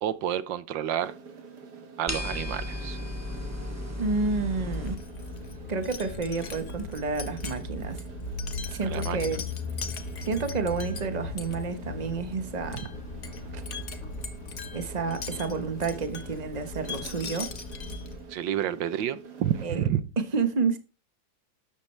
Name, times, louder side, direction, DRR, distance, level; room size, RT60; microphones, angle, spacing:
voice 1, 0.0-1.1 2.0-3.0 8.8-9.2 18.3-20.0, right 10 dB, 85° right, 1.6 m, -29 dB
sound 1, 1.0-19.7, right 5 dB, 65° right, 2.4 m, -47 dB
sound 2, 2.1-4.9, left 1 dB, 10° right, 2.0 m, -34 dB
voice 2, 4.0-5.0 5.7-8.0 8.7-9.4 10.2-12.8 13.5-13.6 14.7-17.5 19.6-19.8 20.2-20.8, right 4 dB, 25° right, 1.3 m, -30 dB
Wind chime, 4.6-18.3, left 3 dB, 45° left, 1.5 m, -37 dB
12.5 x 10.5 x 3.3 m
omnidirectional pair, 1.9 m